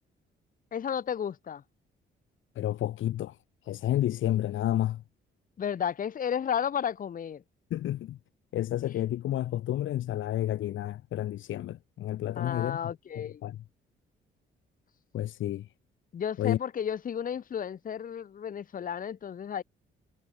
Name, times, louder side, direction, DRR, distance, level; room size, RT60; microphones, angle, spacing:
voice 1, 0.7-1.6 5.6-7.4 12.4-13.4 16.1-19.6, left 8 dB, 45° left, 1.0 m, -33 dB
voice 2, 2.6-3.4 3.6-5.0 7.7-8.2 8.5-13.6 15.1-15.7 16.4-16.6, left 13 dB, 75° left, 2.4 m, -30 dB
cardioid pair, 90°, 20 cm